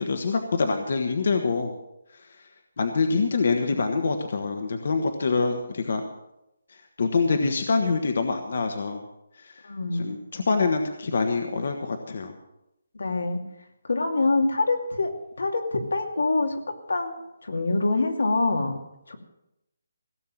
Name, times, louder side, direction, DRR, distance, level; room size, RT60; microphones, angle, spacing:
voice 1, 0.0-1.7 2.8-6.0 6.7-9.0 9.4-9.6 9.9-12.4, left 4 dB, 50° left, 5 dB, 1.3 m, -25 dB
voice 2, 9.6-10.2 12.9-13.4 13.8-15.1 15.4-16.6 16.9-18.7 19.1-19.2, left 3 dB, 90° left, 3 dB, 2.6 m, -25 dB
17.0 x 7.5 x 7.5 m, 0.86 s
hypercardioid pair, 175°, 0 cm